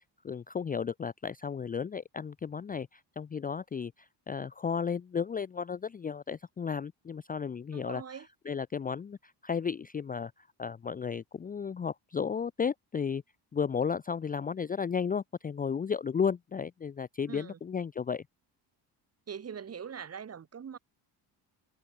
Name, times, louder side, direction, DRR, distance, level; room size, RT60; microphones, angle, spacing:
voice 1, 0.0-8.0 8.5-13.2 13.5-18.2, left 6 dB, 20° left, 0.6 m, -34 dB
voice 2, 7.7-8.3 17.3-17.6 19.3-20.8, right 7 dB, 35° right, 3.4 m, -42 dB
cardioid pair, 155°, 43 cm